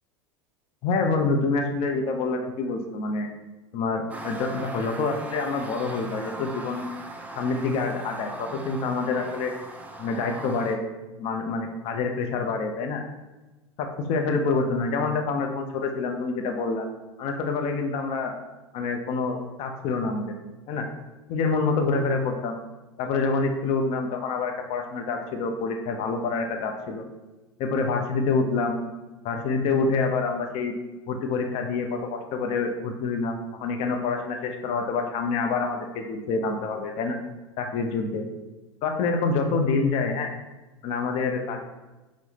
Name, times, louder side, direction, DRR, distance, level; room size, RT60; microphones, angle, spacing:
voice 1, 0.8-3.3 3.7-6.9 7.3-9.5 10.0-10.8 11.2-13.0 13.8-16.8 17.2-18.3 18.7-20.3 20.7-20.9 21.3-22.6 23.0-27.0 27.6-28.8 29.2-30.7 31.1-37.2 37.6-38.2 38.8-40.3 40.8-41.6, left 4 dB, 45° left, 4 dB, 0.5 m, -27 dB
sound 1, 4.1-10.8, right 2 dB, 10° right, 0.4 m, -39 dB
4.6 x 2.0 x 2.9 m, 1.1 s
hypercardioid pair, 85°, 14 cm